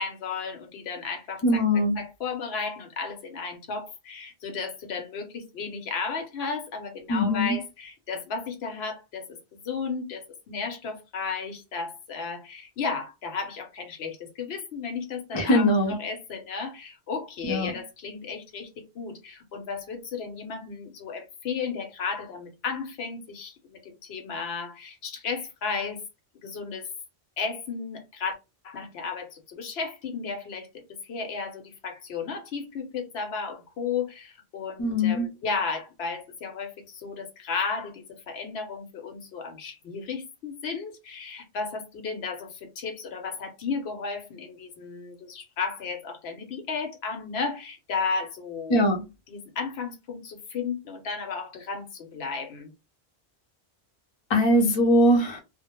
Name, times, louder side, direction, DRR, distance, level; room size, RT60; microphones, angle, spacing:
voice 1, 0.0-1.6 2.0-26.0 26.4-26.9 27.4-28.4 28.6-48.8 49.3-52.7, left 5 dB, 70° left, 0.9 m, -34 dB
voice 2, 1.4-2.0 7.1-7.6 15.3-16.0 17.5-17.7 34.8-35.3 48.7-49.0 54.3-55.4, left 1 dB, 35° left, 0.5 m, -21 dB
2.2 x 2.0 x 2.9 m
omnidirectional pair, 1.1 m